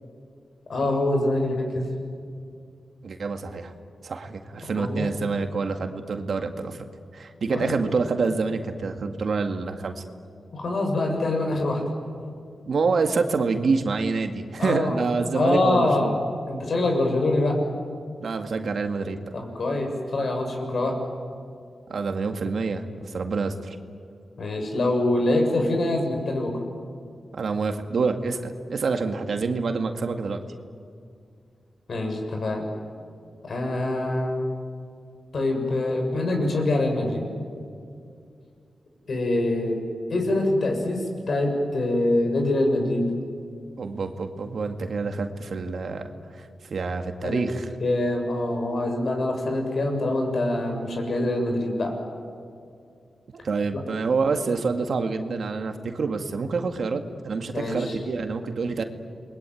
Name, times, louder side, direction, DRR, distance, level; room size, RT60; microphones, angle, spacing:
voice 1, 0.7-1.9 4.7-5.1 7.5-7.8 10.5-11.8 14.6-15.0 15.3-16.2 16.5-17.6 19.3-21.0 24.4-26.6 31.9-32.7 33.4-34.4 35.3-37.3 39.1-39.8 40.1-43.0 47.2-47.5 47.8-52.0 57.5-58.0, left 2 dB, 65° left, 3 dB, 6.9 m, -24 dB
voice 2, 3.0-3.7 4.0-6.8 7.1-10.0 12.7-16.1 18.2-19.3 21.9-23.8 27.3-30.4 43.8-46.1 46.4-47.7 53.4-58.8, right 4 dB, 70° right, 6 dB, 2.1 m, -27 dB
29.0 x 21.5 x 9.4 m, 2.4 s
cardioid pair, 85°, 0 cm